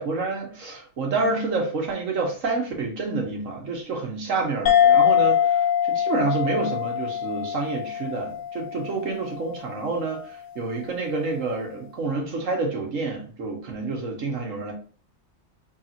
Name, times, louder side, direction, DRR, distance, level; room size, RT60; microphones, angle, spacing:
voice 1, 0.0-5.6 5.9-14.7, right 3 dB, 80° right, 1.6 m, -28 dB
sound 1, 4.7-9.6, left 9 dB, 80° left, 1.0 m, -23 dB
5.8 x 3.3 x 2.5 m
omnidirectional pair, 1.3 m